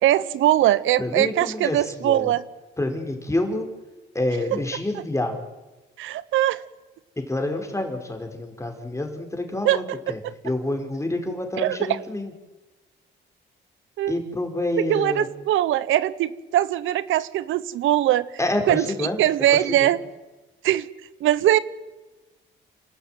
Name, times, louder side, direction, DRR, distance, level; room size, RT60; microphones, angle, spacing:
voice 1, 0.0-2.4 6.0-6.6 9.6-9.8 11.6-11.8 14.0-14.1 14.9-18.3 18.7-18.8 19.2-20.0 20.6-20.9 21.2-21.6, right 13 dB, 85° right, 18 dB, 0.8 m, -21 dB
voice 2, 1.0-2.4 2.8-3.7 4.1-5.4 7.2-12.3 14.1-15.3 18.4-19.2 19.5-20.0, left 1 dB, 15° left, 5 dB, 4.5 m, -28 dB
28.0 x 12.5 x 9.1 m, 1.1 s
cardioid pair, 90°, 20 cm